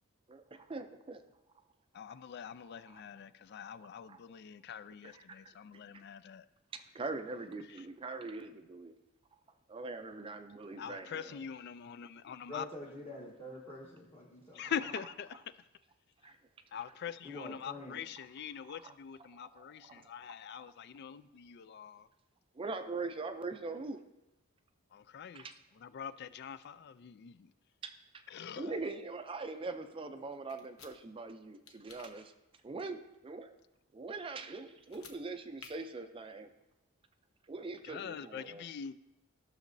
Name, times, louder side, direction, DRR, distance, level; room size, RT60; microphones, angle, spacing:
voice 1, 0.3-1.2 2.7-3.0 4.1-4.2 4.7-5.5 5.9-6.0 6.7-8.9 9.7-11.5 14.6-14.8 16.2-16.4 18.6-18.9 19.4-20.7 22.5-24.0 25.3-25.5 27.8-28.2 28.5-32.3 32.6-33.5 33.9-36.5 37.5-38.7, right 3 dB, 25° right, 8 dB, 0.4 m, -43 dB
voice 2, 1.9-6.4 10.8-12.7 14.6-15.4 16.7-22.1 24.9-25.4 25.8-27.5 28.3-28.7 37.9-38.9, left 8 dB, 50° left, 15 dB, 0.3 m, -44 dB
voice 3, 12.4-14.6 17.2-18.0, left 1 dB, 30° left, -6 dB, 1.1 m, -46 dB
sound 1, 30.5-30.9 31.7-32.1 34.8-35.2 35.6-35.7, left 6 dB, 85° left, 0.9 m, -53 dB
14.0 x 6.4 x 2.6 m, 0.97 s
head